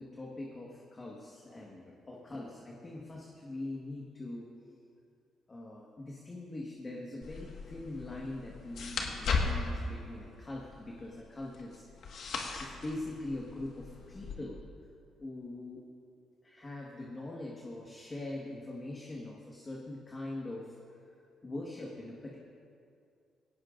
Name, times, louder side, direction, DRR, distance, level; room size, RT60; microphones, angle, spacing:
voice 1, 0.0-4.8 5.5-11.8 12.2-14.6 15.2-15.8 16.4-20.8 21.4-22.4, left 2 dB, 30° left, -2 dB, 1.6 m, -42 dB
sound 1, 7.2-14.3, left 4 dB, 70° left, 1.7 m, -37 dB
17.5 x 17.5 x 2.6 m, 2.5 s
cardioid pair, 90°, 0 cm